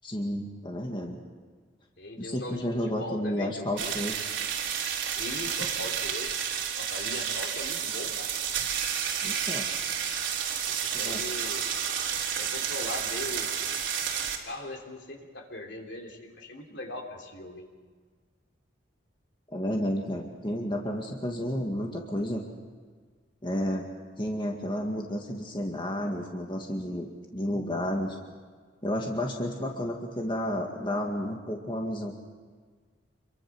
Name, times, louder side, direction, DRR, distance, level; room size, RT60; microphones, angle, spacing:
voice 1, 0.0-1.2 2.2-4.1 9.2-9.7 11.0-11.2 19.5-22.4 23.4-23.9 24.2-28.2 28.8-32.1, equal, 25° left, 1 dB, 2.0 m, -31 dB
voice 2, 2.0-3.9 5.2-6.5 6.7-8.3 10.8-11.7 12.4-13.6 14.4-17.7, left 1 dB, 65° left, 3 dB, 3.3 m, -40 dB
sound 1, 3.8-14.4, right 8 dB, 80° right, 3.2 m, -31 dB
27.5 x 23.0 x 6.2 m, 1.5 s
head